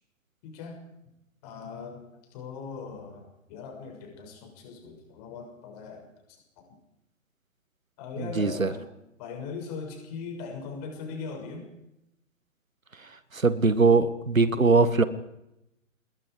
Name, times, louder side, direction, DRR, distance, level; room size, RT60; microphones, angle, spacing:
voice 1, 0.4-0.8 1.4-6.8 8.0-8.9 9.2-11.7, left 5 dB, 30° left, 2 dB, 6.6 m, -40 dB
voice 2, 8.4-8.7 13.3-15.0, right 4 dB, 80° right, 14 dB, 1.8 m, -21 dB
27.5 x 20.5 x 5.0 m, 0.87 s
figure-of-eight pair, 130°, 40 cm